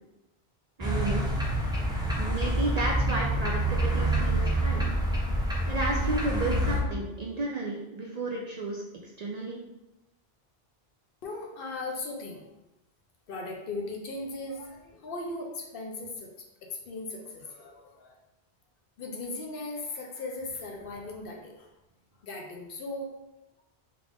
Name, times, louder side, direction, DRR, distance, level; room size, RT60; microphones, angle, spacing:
sound 1, 0.8-6.8, right 1 dB, 5° right, 0.5 m, -27 dB
voice 1, 0.8-1.2 2.2-4.8 5.7-8.8 9.2-9.6, right 2 dB, 55° right, -2 dB, 0.5 m, -32 dB
voice 2, 11.2-12.5 13.3-16.3 16.6-18.2 19.0-21.7 22.2-23.1, left 2 dB, 65° left, 1 dB, 0.8 m, -38 dB
3.5 x 2.4 x 3.5 m, 0.93 s
omnidirectional pair, 1.1 m